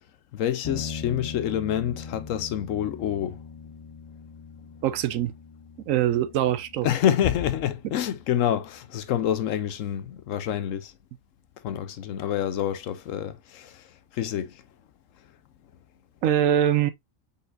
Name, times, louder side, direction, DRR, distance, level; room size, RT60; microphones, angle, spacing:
voice 1, 0.3-3.4 6.8-10.9 11.6-13.8 14.1-14.6, left 10 dB, 75° left, 1.0 m, -27 dB
sound 1, 0.6-10.1, left 5 dB, 50° left, 0.3 m, -42 dB
voice 2, 4.8-5.3 5.9-6.9 16.2-16.9, right 11 dB, 80° right, 1.0 m, -23 dB
5.2 x 4.2 x 2.5 m
omnidirectional pair, 1.4 m